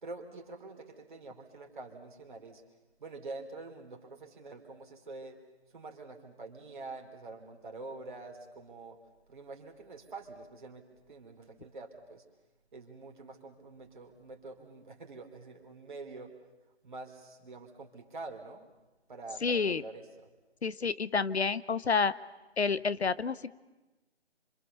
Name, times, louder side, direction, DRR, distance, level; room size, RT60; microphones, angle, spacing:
voice 1, 0.0-2.6 3.0-5.4 5.7-9.0 9.3-12.2 12.7-16.3 16.8-18.7 19.1-20.3, right 3 dB, 45° right, 2 dB, 3.6 m, -46 dB
voice 2, 19.4-19.8 20.6-22.1 22.6-23.5, left 5 dB, 70° left, 17 dB, 0.9 m, -29 dB
27.0 x 26.0 x 6.9 m, 1.1 s
figure-of-eight pair, 165°, 34 cm